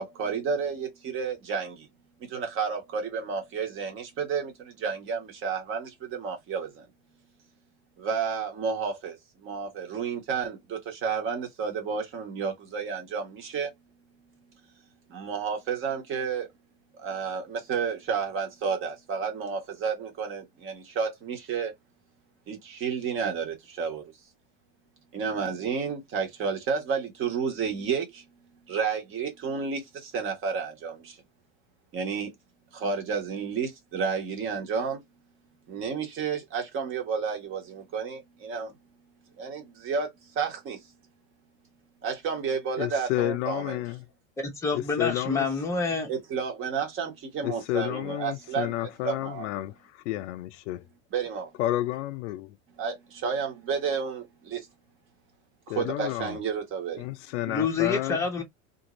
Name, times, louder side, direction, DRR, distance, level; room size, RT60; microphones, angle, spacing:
voice 1, 0.0-1.9 2.2-6.8 8.0-13.7 15.1-16.5 16.9-21.7 22.5-24.1 25.1-28.3 28.7-31.2 31.9-32.3 32.7-35.0 35.7-38.7 39.4-40.9 42.0-43.7 46.1-48.7 49.0-49.5 51.1-51.5 52.8-54.7 55.7-57.1, right 6 dB, 30° right, 1.2 m, -31 dB
voice 2, 42.8-44.1 44.7-45.5 47.4-50.8 51.6-52.6 55.7-56.4 57.0-58.3, left 15 dB, 60° left, 0.5 m, -31 dB
voice 3, 44.4-46.1 57.5-58.4, left 4 dB, 5° left, 0.8 m, -27 dB
2.6 x 2.5 x 3.0 m
supercardioid pair, 135°, 40 cm